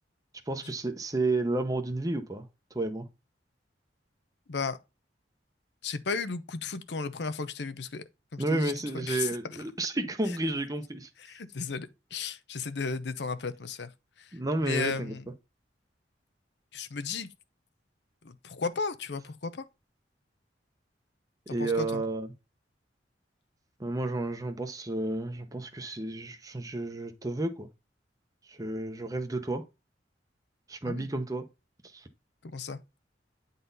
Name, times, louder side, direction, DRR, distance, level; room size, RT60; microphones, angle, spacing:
voice 1, 0.5-2.5 2.7-3.1 8.4-11.1 14.3-15.1 21.5-22.3 23.8-27.7 28.5-29.6 30.7-31.4 31.9-32.1, right 2 dB, 20° right, 0.8 m, -31 dB
voice 2, 5.8-8.0 8.3-9.3 11.2-13.9 14.2-15.2 16.7-17.3 18.2-19.6 21.5-22.0 30.8-31.1 32.4-32.8, left 4 dB, 70° left, 0.7 m, -35 dB
9.3 x 4.0 x 4.0 m
head